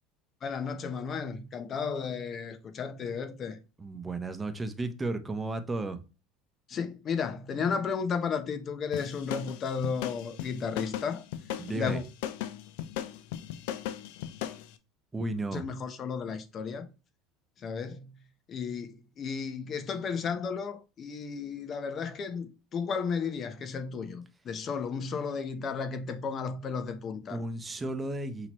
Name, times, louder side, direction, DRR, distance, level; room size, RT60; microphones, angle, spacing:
voice 1, 0.4-3.6 6.7-11.2 11.7-12.0 15.5-16.9 17.6-18.1 18.5-27.4, left 5 dB, 40° left, 0.8 m, -33 dB
voice 2, 3.8-6.0 11.6-12.0 15.1-15.6 27.3-28.5, right 2 dB, 15° right, 0.7 m, -34 dB
sound 1, 8.9-14.7, left 11 dB, 80° left, 0.4 m, -37 dB
5.8 x 2.9 x 3.0 m
supercardioid pair, 100°, 0 cm